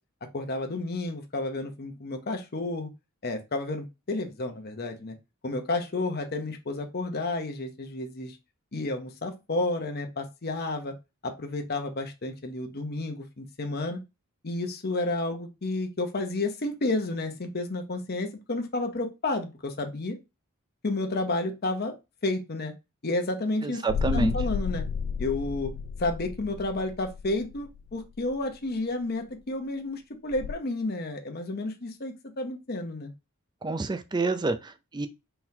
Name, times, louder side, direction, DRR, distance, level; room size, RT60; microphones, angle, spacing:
voice 1, 0.3-2.9 3.2-5.1 5.4-8.4 8.7-10.9 11.2-14.0 14.4-20.2 20.8-21.9 22.2-22.7 23.0-23.8 24.1-24.8 25.2-25.7 26.0-33.1, left 2 dB, 45° left, 0.8 m, -31 dB
voice 2, 23.6-24.3 33.6-35.1, right 3 dB, 20° right, 0.4 m, -28 dB
sound 1, 23.9-28.3 30.3-30.5, left 6 dB, 65° left, 0.3 m, -32 dB
4.4 x 3.8 x 2.7 m
head